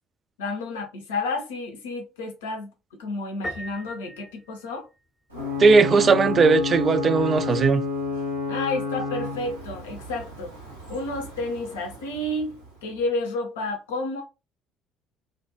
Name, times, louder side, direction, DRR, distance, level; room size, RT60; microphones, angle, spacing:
voice 1, 0.4-4.9 8.5-10.6 10.9-14.2, left 2 dB, 70° left, 0.6 m, -31 dB
Piano, 3.4-5.3, equal, 20° left, 0.7 m, -38 dB
Ocean / Boat Water vehicle / Alarm, 5.3-12.9, left 4 dB, 85° right, 0.7 m, -31 dB
voice 2, 5.6-7.8, right 4 dB, 35° right, 0.3 m, -18 dB
2.3 x 2.1 x 2.7 m
figure-of-eight pair, 55°, 0 cm